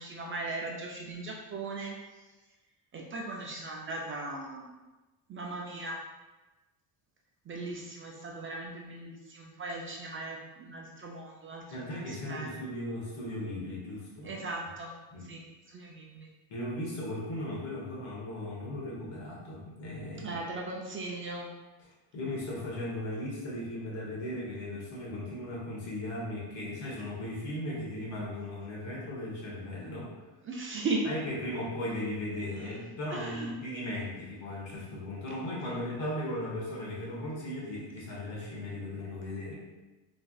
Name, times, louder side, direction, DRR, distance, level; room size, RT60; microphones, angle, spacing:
voice 1, 0.0-2.0 2.9-4.7 5.3-6.0 7.5-12.6 14.2-14.9 15.2-16.3 20.2-21.5 30.4-31.0 32.6-32.7 33.1-33.6, right 2 dB, 30° right, -1 dB, 0.4 m, -38 dB
voice 2, 11.7-14.3 15.1-15.3 16.5-20.4 22.1-30.1 31.0-39.5, left 1 dB, 75° left, -5 dB, 1.3 m, -37 dB
3.2 x 2.4 x 2.3 m, 1.1 s
supercardioid pair, 85°, 46 cm